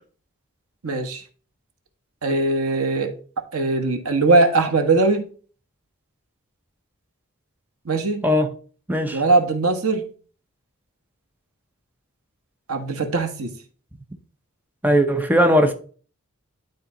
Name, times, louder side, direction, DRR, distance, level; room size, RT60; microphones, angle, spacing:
voice 1, 0.8-1.2 2.2-3.1 3.5-5.3 7.8-8.2 9.1-10.0 12.7-13.5, right 3 dB, 85° right, 1.4 m, -20 dB
voice 2, 8.9-9.2 14.8-15.7, equal, 10° right, 0.8 m, -18 dB
11.5 x 4.2 x 3.9 m
head